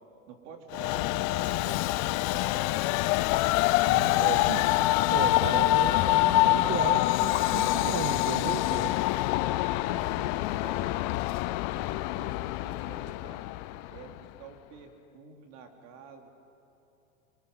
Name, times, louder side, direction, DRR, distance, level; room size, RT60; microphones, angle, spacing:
voice 1, 0.3-3.1 9.7-11.1 11.7-13.5 13.9-14.1 14.4-16.3, right 5 dB, 55° right, 3 dB, 3.5 m, -48 dB
Train, 0.7-14.2, left 18 dB, 45° left, 0.6 m, -26 dB
sound 1, 3.3-3.6 5.4-5.7 7.3-7.6 9.3-9.6, left 13 dB, 65° left, 1.6 m, -35 dB
voice 2, 3.8-8.9, right 12 dB, 35° right, 11 dB, 0.7 m, -36 dB
29.0 x 23.0 x 5.6 m, 2.8 s
hypercardioid pair, 125°, 42 cm